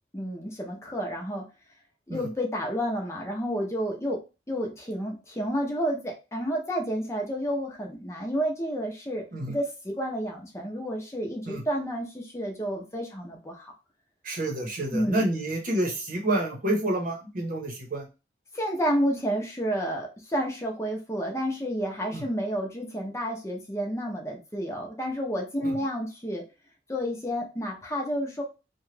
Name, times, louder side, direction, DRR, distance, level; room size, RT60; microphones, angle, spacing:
voice 1, 0.1-1.4 2.1-4.2 4.5-13.7 14.9-15.2 18.5-26.4 26.9-28.4, equal, 15° left, 0 dB, 0.7 m, -30 dB
voice 2, 14.2-18.1 22.1-22.3 25.6-25.7, right 1 dB, 50° right, 1 dB, 0.9 m, -29 dB
3.0 x 2.3 x 3.2 m, 0.29 s
head